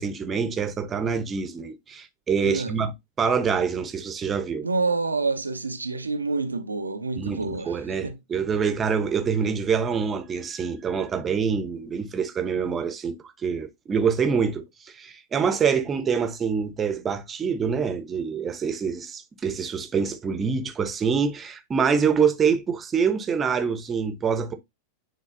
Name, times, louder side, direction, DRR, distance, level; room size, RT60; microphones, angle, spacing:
voice 1, 0.0-2.9 3.2-4.7 7.2-24.5, right 6 dB, 20° right, 0.9 m, -25 dB
voice 2, 2.4-2.8 4.6-8.2, right 3 dB, 80° right, 0.7 m, -28 dB
9.9 x 3.8 x 2.7 m
figure-of-eight pair, 90°, 0 cm